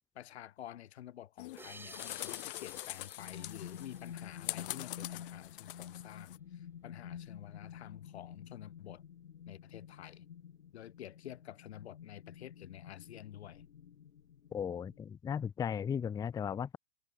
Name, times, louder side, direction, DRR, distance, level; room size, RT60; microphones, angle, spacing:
voice 1, 0.1-9.0 9.5-10.2 10.7-13.6, left 12 dB, 65° left, 1.6 m, -50 dB
sound 1, 1.4-6.4, left 18 dB, 50° left, 1.6 m, -44 dB
sound 2, 1.6-4.9, right 3 dB, 5° right, 3.9 m, -55 dB
sound 3, 3.2-15.0, left 9 dB, 85° left, 1.5 m, -50 dB
voice 2, 14.5-16.8, left 7 dB, 10° left, 0.8 m, -36 dB
hypercardioid pair, 130°, 34 cm